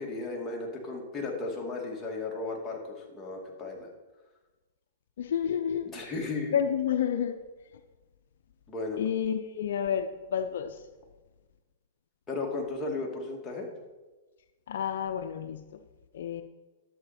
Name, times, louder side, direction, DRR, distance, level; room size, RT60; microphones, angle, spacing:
voice 1, 0.0-3.9 5.9-6.6 8.7-9.0 12.3-13.7, left 3 dB, 15° left, -2 dB, 2.3 m, -35 dB
voice 2, 5.2-5.9 6.5-7.4 9.0-10.8 14.7-15.6 16.1-16.4, left 8 dB, 70° left, 9 dB, 0.6 m, -29 dB
11.0 x 7.8 x 4.3 m, 1.2 s
hypercardioid pair, 125°, 0 cm